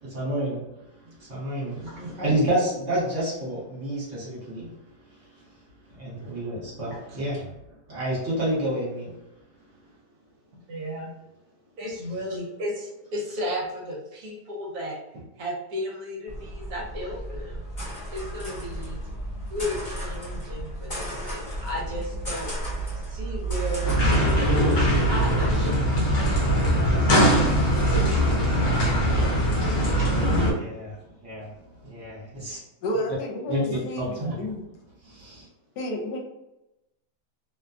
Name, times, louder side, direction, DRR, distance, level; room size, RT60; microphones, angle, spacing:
voice 1, 0.0-0.6 1.0-4.7 5.1-5.2 6.0-7.5 7.9-9.1 30.5-31.5 31.8-32.6 33.5-34.5 35.0-35.5, right 1 dB, 50° right, -7 dB, 1.4 m, -29 dB
voice 2, 1.8-2.1 6.9-7.2 10.7-11.1 11.8-17.6 18.1-19.0 19.5-22.5 23.1-29.0 30.0-30.1, left 1 dB, 70° right, -2 dB, 1.1 m, -35 dB
sound 1, 16.3-25.5, right 2 dB, 30° left, 1.0 m, -33 dB
sound 2, 23.8-30.5, equal, 55° left, 0.9 m, -21 dB
voice 3, 32.8-34.7 35.8-36.2, left 1 dB, 75° left, 0 dB, 1.2 m, -31 dB
2.8 x 2.2 x 2.4 m, 0.94 s
omnidirectional pair, 1.8 m